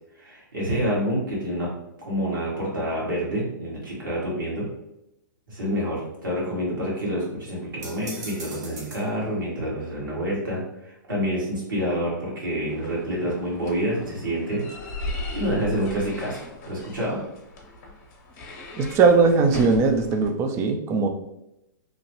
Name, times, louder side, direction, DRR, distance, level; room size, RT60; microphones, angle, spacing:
voice 1, 0.2-1.7 2.0-4.7 5.5-14.6 15.3-17.2, equal, 85° right, -6 dB, 1.5 m, -28 dB
sound 1, 7.8-9.1, right 2 dB, 55° right, 0.9 m, -39 dB
sound 2, 12.7-20.3, left 2 dB, 50° left, 0.7 m, -37 dB
voice 2, 18.8-21.1, right 4 dB, 25° right, 5 dB, 0.4 m, -19 dB
3.0 x 2.2 x 2.9 m, 0.87 s
hypercardioid pair, 115°, 11 cm